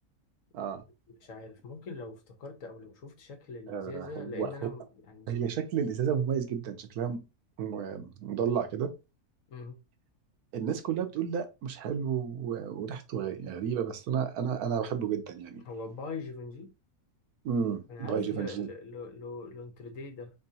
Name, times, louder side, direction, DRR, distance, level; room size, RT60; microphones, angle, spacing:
voice 1, 1.2-5.4 9.5-9.8 15.6-16.7 17.9-20.3, left 4 dB, 60° left, 1.2 m, -42 dB
voice 2, 3.7-4.5 5.3-7.2 7.6-8.9 10.5-15.6 17.4-18.7, right 7 dB, 80° right, 1.2 m, -32 dB
3.7 x 3.6 x 2.7 m
omnidirectional pair, 1.6 m